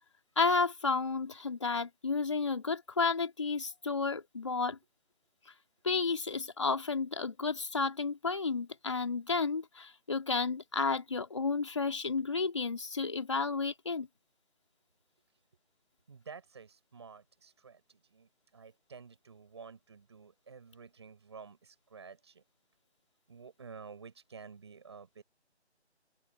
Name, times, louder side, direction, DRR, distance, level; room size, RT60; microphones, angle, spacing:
voice 1, 0.4-4.8 5.8-14.1, left 4 dB, 25° left, 2.9 m, -32 dB
voice 2, 16.1-22.4 23.3-25.2, right 5 dB, 25° right, 7.5 m, -51 dB
open air
figure-of-eight pair, 175°, 34 cm